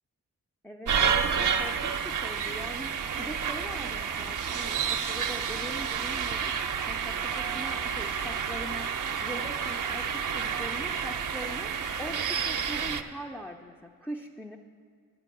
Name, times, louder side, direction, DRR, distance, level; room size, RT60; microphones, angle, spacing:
voice 1, 0.6-2.9 3.2-6.5 6.9-8.9 9.2-11.7 12.0-14.6, equal, 5° left, 1 dB, 0.4 m, -41 dB
sound 1, 0.9-13.0, right 7 dB, 65° right, 0.5 m, -30 dB
9.8 x 5.2 x 8.2 m, 2.1 s
wide cardioid pair, 105°, 34 cm